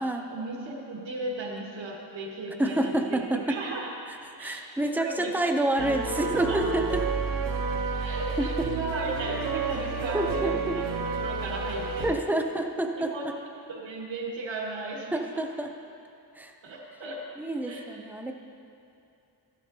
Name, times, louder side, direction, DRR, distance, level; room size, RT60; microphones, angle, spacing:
voice 1, 0.3-3.2 3.5-3.9 4.4-5.9 6.3-6.7 8.0-10.6 11.0-12.1 13.1-13.3 13.7-15.4 16.6-17.2 17.6-17.9, right 2 dB, 85° right, -2 dB, 1.5 m, -36 dB
voice 2, 2.6-3.6 4.4-7.0 8.4-8.7 10.1-10.8 12.0-13.1 15.1-15.7 16.4-16.5 17.4-18.3, right 1 dB, 5° right, 4 dB, 0.3 m, -28 dB
sound 1, 5.8-12.1, right 4 dB, 50° right, 0.6 m, -30 dB
13.5 x 10.5 x 2.7 m, 2.7 s
wide cardioid pair, 180°, 44 cm